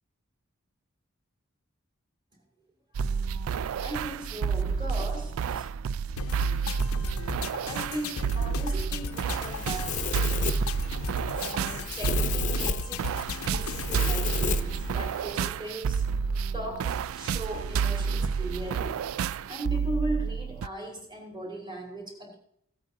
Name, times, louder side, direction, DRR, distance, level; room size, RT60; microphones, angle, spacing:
sound 1, 2.9-20.7, right 6 dB, 75° right, 0.3 m, -30 dB
voice 1, 3.8-5.7 7.6-10.4 11.4-13.1 13.4-16.0 16.5-19.1 19.5-22.4, right 1 dB, 20° right, 1 dB, 2.8 m, -38 dB
sound 2, 6.2-14.2, left 5 dB, 85° left, 0.5 m, -37 dB
Domestic sounds home sounds, 9.1-15.3, left 5 dB, 35° left, 0.6 m, -34 dB
16.5 x 8.5 x 3.9 m, 0.73 s
head